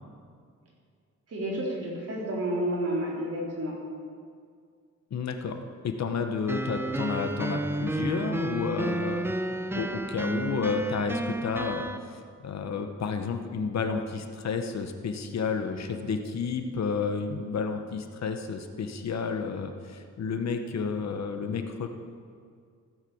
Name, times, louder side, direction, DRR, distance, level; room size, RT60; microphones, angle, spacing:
voice 1, 1.3-3.7, right 1 dB, 55° right, -4 dB, 3.9 m, -30 dB
voice 2, 5.1-5.6 5.8-9.4 9.7-21.9, left 5 dB, 65° left, 6 dB, 1.1 m, -31 dB
sound 1, 6.5-12.0, right 2 dB, 10° right, 0.5 m, -31 dB
15.5 x 8.2 x 7.1 m, 2.1 s
wide cardioid pair, 155°, 30 cm